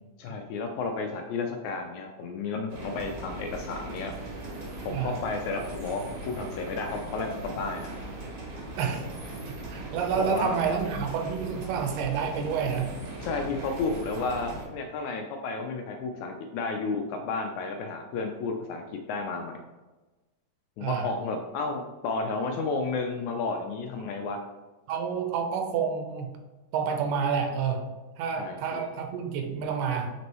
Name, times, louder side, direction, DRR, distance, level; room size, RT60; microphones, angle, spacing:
voice 1, 0.2-4.1 4.8-7.9 10.1-10.5 13.2-19.6 20.8-24.4 28.4-28.8, left 3 dB, 80° left, 4 dB, 1.7 m, -32 dB
sound 1, 2.7-14.7, right 2 dB, 60° right, 2.5 m, -39 dB
voice 2, 9.7-13.0 20.8-21.1 24.9-26.3 26.7-27.9 28.2-30.1, right 6 dB, 85° right, 5 dB, 2.3 m, -29 dB
6.0 x 5.2 x 3.0 m, 1.2 s
omnidirectional pair, 3.7 m